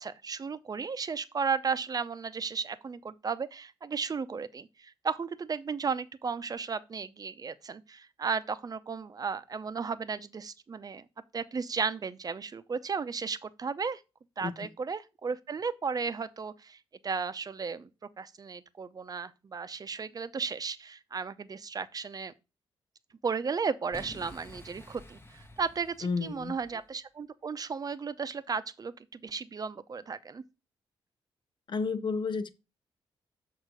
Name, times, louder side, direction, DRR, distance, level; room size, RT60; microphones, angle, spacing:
voice 1, 0.0-11.0 11.3-14.0 14.4-17.9 18.2-22.3 23.2-30.4, right 5 dB, 40° right, 0.7 m, -34 dB
Boom, 23.9-26.9, left 1 dB, 25° left, 1.1 m, -50 dB
voice 2, 26.0-26.6 31.7-32.5, left 4 dB, 55° left, 0.8 m, -31 dB
6.5 x 4.7 x 6.2 m
cardioid pair, 80°, 10 cm